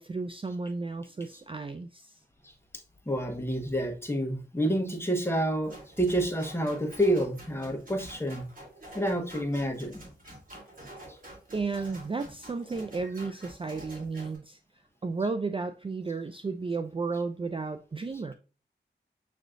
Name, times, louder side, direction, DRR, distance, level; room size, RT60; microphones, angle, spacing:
voice 1, 0.0-2.2 11.5-14.6 15.0-18.3, right 4 dB, 30° right, 0.3 m, -33 dB
voice 2, 3.1-8.5 8.9-10.0 11.1-11.2, right 1 dB, 15° left, 1.2 m, -29 dB
sound 1, 5.7-14.4, right 1 dB, 45° right, 2.3 m, -48 dB
6.4 x 3.1 x 2.5 m
cardioid pair, 45°, 19 cm